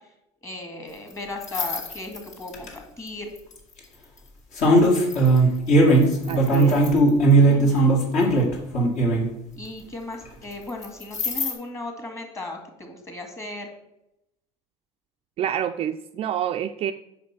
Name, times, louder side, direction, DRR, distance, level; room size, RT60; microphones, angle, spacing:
voice 1, 0.4-2.7 3.0-3.3 7.4-7.9 9.6-13.7, left 2 dB, 20° left, 3 dB, 1.9 m, -36 dB
sound 1, 1.4-2.7 3.5-3.8 4.5-9.3 10.8-11.5, right 2 dB, 55° left, 2.1 m, -18 dB
voice 2, 6.3-6.8 15.4-16.9, right 10 dB, 40° right, 7 dB, 0.3 m, -28 dB
5.2 x 4.9 x 5.8 m, 0.85 s
supercardioid pair, 85°, 15 cm